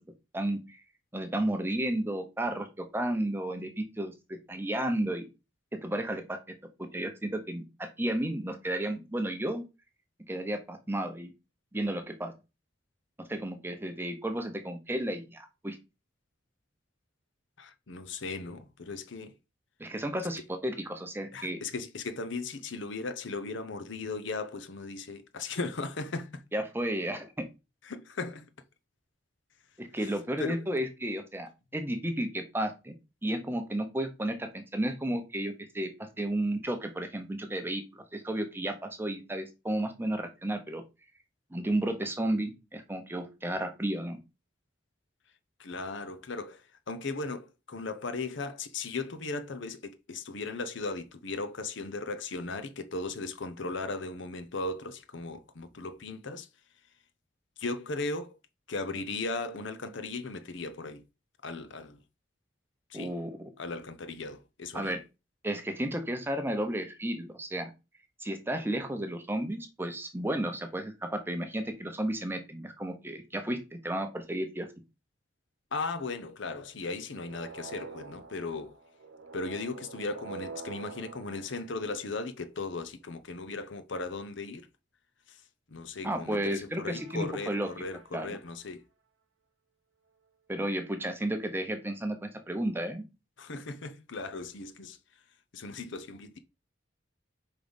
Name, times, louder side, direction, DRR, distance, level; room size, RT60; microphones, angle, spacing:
voice 1, 0.3-0.8 1.1-5.3 5.7-6.4 6.8-9.6 10.3-11.3 11.7-12.3 13.3-15.8 19.8-21.6 26.5-27.4 29.8-32.9 33.2-37.8 38.1-40.8 41.5-44.2 62.9-63.4 64.7-65.0 65.4-67.7 68.2-74.7 86.0-87.7 88.1-88.3 90.5-93.0, right 1 dB, 10° right, 0.8 m, -33 dB
voice 2, 17.6-19.3 20.4-20.5 21.3-26.4 27.8-28.5 30.4-30.6 45.6-56.5 57.6-58.4 58.7-61.0 61.4-62.0 62.9-63.1 63.6-65.0 75.7-78.8 79.3-84.7 85.3-85.4 85.7-88.8 93.4-95.0 95.5-96.4, left 3 dB, 70° left, 0.8 m, -37 dB
sound 1, 77.1-82.4 86.8-88.4, right 4 dB, 85° right, 0.8 m, -47 dB
5.3 x 3.9 x 5.2 m
head